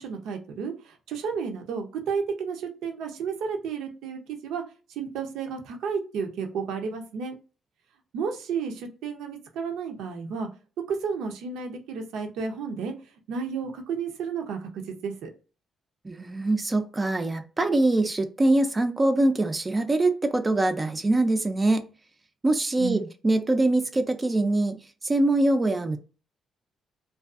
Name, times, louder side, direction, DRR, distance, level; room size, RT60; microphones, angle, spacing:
voice 1, 0.0-4.6 4.9-7.3 8.1-10.5 10.9-12.9 13.3-15.3 22.8-23.1, right 6 dB, 85° right, 4 dB, 0.5 m, -32 dB
voice 2, 16.0-21.9 22.4-26.0, right 2 dB, 25° right, 7 dB, 0.3 m, -23 dB
2.5 x 2.3 x 2.4 m, 0.34 s
cardioid pair, 90°, 0 cm